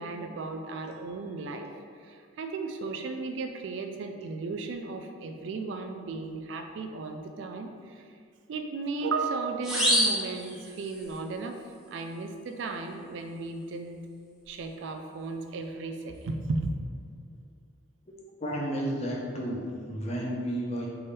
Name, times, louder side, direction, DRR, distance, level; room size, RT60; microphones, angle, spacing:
voice 1, 0.0-8.0 8.5-11.6 11.9-14.0 14.5-16.8, right 3 dB, 65° right, 5 dB, 0.3 m, -35 dB
sound 1, 9.6-11.2, equal, 5° right, 0.7 m, -27 dB
voice 2, 18.4-20.9, equal, 35° left, -3 dB, 0.7 m, -32 dB
3.4 x 3.4 x 4.2 m, 2.2 s
head